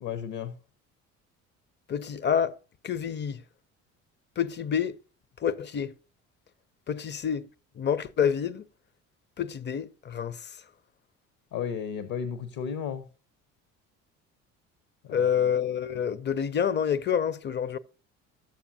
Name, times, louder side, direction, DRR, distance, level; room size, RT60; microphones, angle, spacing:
voice 1, 0.0-0.6 7.0-7.1 11.5-13.1 15.0-15.4, left 7 dB, 60° left, 0.8 m, -34 dB
voice 2, 1.9-2.5 2.8-3.4 4.4-5.0 5.4-5.9 6.9-7.5 7.8-8.7 9.4-10.4 15.1-17.8, left 8 dB, 25° left, 0.5 m, -28 dB
11.5 x 7.0 x 2.6 m
hypercardioid pair, 60°, 40 cm